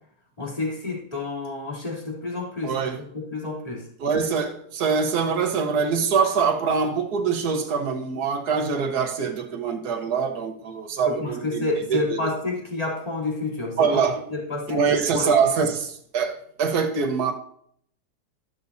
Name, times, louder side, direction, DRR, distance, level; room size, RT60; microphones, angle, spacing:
voice 1, 0.4-3.8 11.0-13.8 14.3-15.3, left 2 dB, 20° left, -4 dB, 3.3 m, -29 dB
voice 2, 2.6-3.0 4.0-12.3 13.8-14.2 14.7-17.3, right 6 dB, 65° right, 4 dB, 1.7 m, -24 dB
14.0 x 11.5 x 2.7 m, 0.66 s
omnidirectional pair, 1.8 m